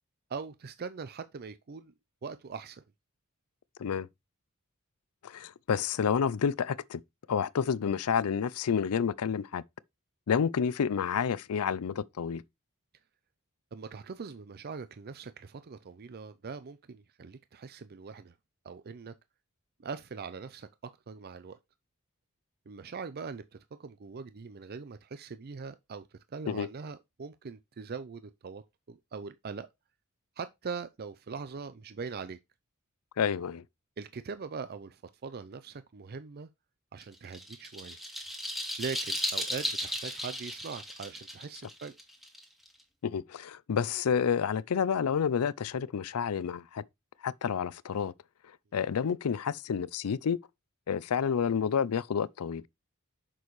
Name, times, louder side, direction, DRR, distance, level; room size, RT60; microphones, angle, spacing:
voice 1, 0.3-1.9 2.2-2.8 13.7-18.3 18.6-19.1 19.8-20.7 21.1-21.6 22.7-28.6 28.9-29.7 30.4-32.4 34.0-36.5 36.9-38.0 38.8-41.9, right 5 dB, 45° right, 0.5 m, -41 dB
voice 2, 5.2-7.0 7.3-9.6 10.3-12.4 26.5-26.7 33.2-33.6 43.0-46.8 47.2-48.1 48.7-50.4 50.9-52.6, left 7 dB, 80° left, 0.4 m, -29 dB
sound 1, 37.0-42.8, equal, ahead, 2.0 m, -36 dB
7.1 x 6.1 x 3.1 m
head